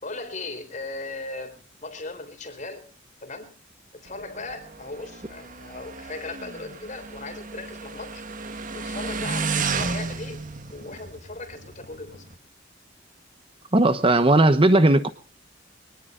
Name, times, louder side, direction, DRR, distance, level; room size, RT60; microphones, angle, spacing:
voice 1, 0.0-2.9 3.2-3.5 3.9-8.2 8.7-10.4 10.7-12.2, left 3 dB, 40° left, 3.8 m, -37 dB
Motorcycle, 4.1-12.3, right 4 dB, 45° right, 1.5 m, -33 dB
voice 2, 13.7-15.1, right 2 dB, 30° right, 1.0 m, -17 dB
24.0 x 19.0 x 2.5 m
head